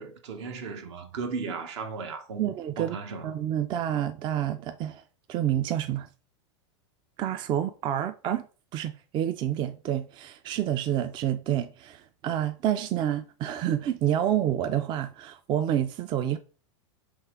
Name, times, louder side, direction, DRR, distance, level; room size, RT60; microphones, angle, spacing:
voice 1, 0.0-3.3, right 4 dB, 70° right, 1.1 m, -36 dB
voice 2, 2.4-3.0 3.2-5.0 5.3-6.1 7.2-8.5 8.7-16.4, right 11 dB, 30° right, 0.4 m, -28 dB
3.6 x 3.4 x 4.4 m
hypercardioid pair, 115°, 16 cm